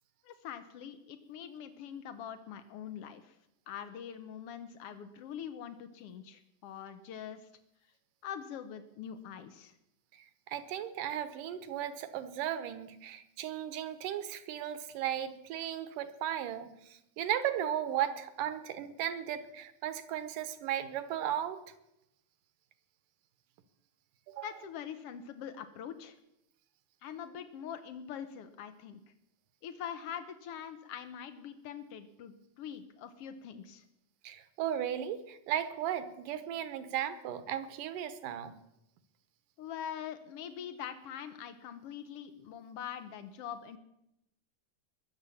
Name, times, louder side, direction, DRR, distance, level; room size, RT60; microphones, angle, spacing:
voice 1, 0.2-3.4 3.7-7.4 8.2-9.7 24.4-26.2 27.0-29.0 29.6-33.8 39.6-43.8, left 8 dB, 80° left, 11 dB, 1.3 m, -43 dB
voice 2, 10.5-21.6 24.3-24.5 34.2-38.6, right 10 dB, 75° right, 12 dB, 2.4 m, -36 dB
21.5 x 7.5 x 7.1 m, 0.84 s
omnidirectional pair, 4.0 m